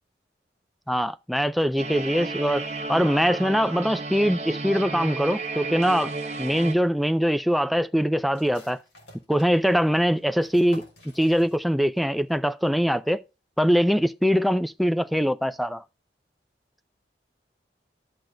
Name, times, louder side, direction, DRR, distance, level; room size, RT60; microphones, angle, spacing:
voice 1, 0.9-6.1 6.4-8.8 9.3-10.8 11.2-13.2 13.6-15.8, equal, ahead, 0.4 m, -22 dB
sound 1, 1.8-6.7, right 3 dB, 40° right, 1.1 m, -33 dB
sound 2, 8.3-12.0 12.2-12.3 12.8-13.2, left 1 dB, 80° left, 3.5 m, -51 dB
12.0 x 7.8 x 2.3 m
head